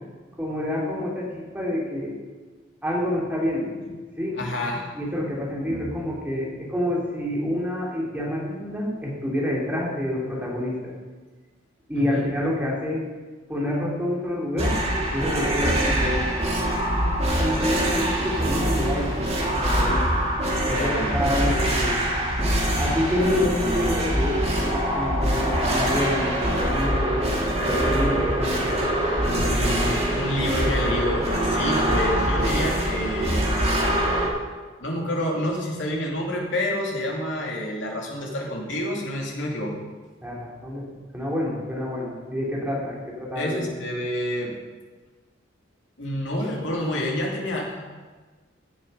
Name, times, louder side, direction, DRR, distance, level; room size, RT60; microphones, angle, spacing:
voice 1, 0.4-2.2 2.8-3.7 4.2-4.4 4.9-10.9 11.9-13.0 13.5-14.7 15.1-16.4 17.4-20.2 20.6-22.0 22.8-27.2 27.6-28.7 40.2-40.9 41.1-43.6, left 1 dB, 10° right, -4 dB, 2.9 m, -28 dB
voice 2, 4.4-5.2 5.7-5.8 12.0-12.3 20.7-21.2 29.2-33.4 34.8-39.8 43.4-44.5 46.0-47.8, left 1 dB, 65° left, -1 dB, 2.7 m, -28 dB
sound 1, 14.6-34.3, right 1 dB, 30° right, 2.4 m, -24 dB
15.5 x 7.5 x 5.5 m, 1.3 s
head